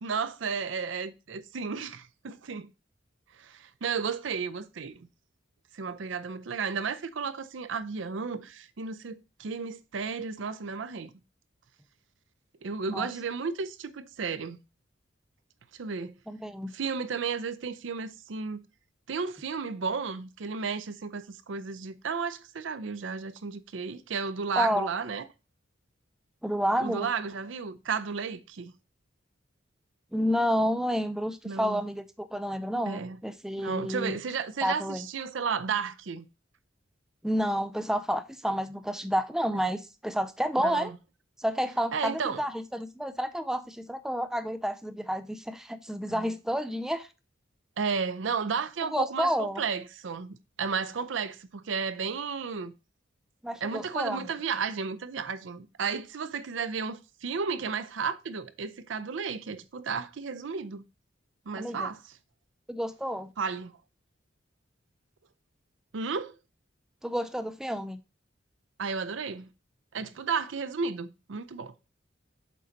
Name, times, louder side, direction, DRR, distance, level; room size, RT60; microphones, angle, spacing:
voice 1, 0.0-2.7 3.4-5.1 5.7-11.1 12.6-14.6 15.8-16.1 16.7-18.6 19.1-25.3 26.8-28.7 31.5-31.8 32.9-33.2 33.6-36.3 40.6-41.0 41.9-42.4 46.1-46.3 47.8-52.7 53.6-60.8 61.5-62.0 63.4-63.7 65.9-66.3 68.8-69.5 69.9-71.7, right 5 dB, 75° right, 0.5 m, -33 dB
voice 2, 16.3-16.7 24.6-24.9 26.4-27.1 30.1-34.2 34.6-35.1 37.2-40.9 41.4-47.1 48.9-49.6 53.4-54.3 61.6-61.9 62.7-63.3 67.0-68.0, equal, 5° right, 0.3 m, -30 dB
7.6 x 4.0 x 3.9 m
head